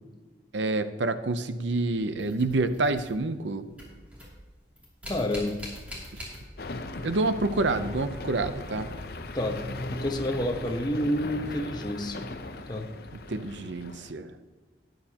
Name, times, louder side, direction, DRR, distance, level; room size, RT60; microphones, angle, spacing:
voice 1, 0.5-3.7 6.1-6.2 7.0-8.9 13.3-14.3, right 2 dB, 85° right, 11 dB, 0.7 m, -28 dB
sound 1, 1.8-3.4 3.7-6.9 7.1-8.9 10.8-10.9 11.7-11.9, equal, 10° right, 2.7 m, -44 dB
voice 2, 5.1-5.6 9.3-12.3 12.7-12.9, left 1 dB, 25° left, 3 dB, 1.0 m, -29 dB
sound 2, 6.6-14.1, left 2 dB, 55° left, 0.7 m, -39 dB
13.0 x 9.5 x 2.9 m, 1.4 s
head